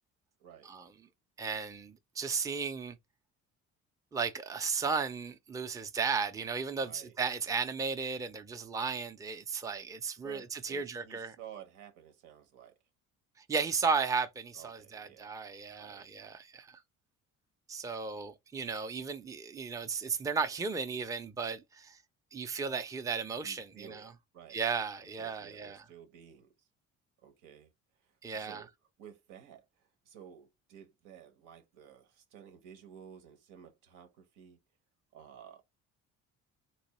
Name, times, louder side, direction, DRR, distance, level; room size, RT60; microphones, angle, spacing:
voice 1, 0.4-0.7 6.8-7.2 10.2-12.7 14.5-15.4 15.8-16.0 23.4-24.6 25.2-26.5 27.2-27.7 28.3-28.7 29.0-34.6 35.1-35.6, right 9 dB, 90° right, 0.9 m, -53 dB
voice 2, 1.4-3.0 4.1-11.4 13.5-16.8 17.7-22.0 22.3-24.1 24.5-25.8 28.2-28.6, right 5 dB, 10° right, 0.4 m, -35 dB
3.3 x 3.1 x 3.0 m
cardioid pair, 115°, 30 cm